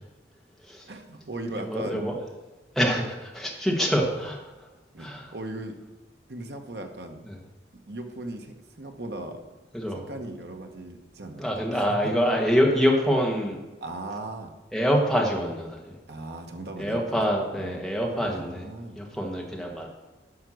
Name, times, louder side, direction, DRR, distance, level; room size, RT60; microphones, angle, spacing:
voice 1, 0.9-2.1 4.9-5.8 6.3-7.3 7.9-9.4 9.9-12.1 13.8-14.5 16.1-19.0, right 2 dB, 70° right, 4 dB, 1.2 m, -38 dB
voice 2, 1.6-2.1 2.7-4.4 5.0-5.3 7.3-7.4 9.7-10.0 11.4-13.6 14.7-15.9 16.8-18.7 18.9-19.9, equal, ahead, -1 dB, 1.4 m, -25 dB
9.9 x 5.9 x 6.3 m, 1.1 s
head